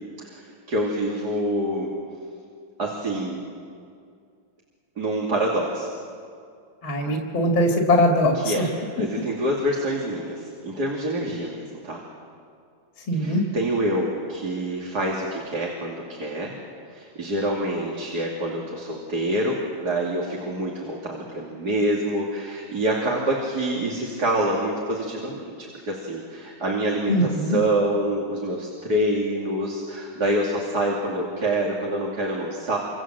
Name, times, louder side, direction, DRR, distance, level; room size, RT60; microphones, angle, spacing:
voice 1, 0.3-1.9 2.8-3.4 5.0-5.9 8.3-8.7 9.0-12.0 13.1-16.5 16.9-32.8, right 1 dB, 50° right, -3 dB, 3.3 m, -26 dB
voice 2, 6.8-8.6 13.1-13.4 27.1-27.6, left 1 dB, 70° left, 1 dB, 2.8 m, -21 dB
27.0 x 27.0 x 7.7 m, 2.3 s
omnidirectional pair, 2.3 m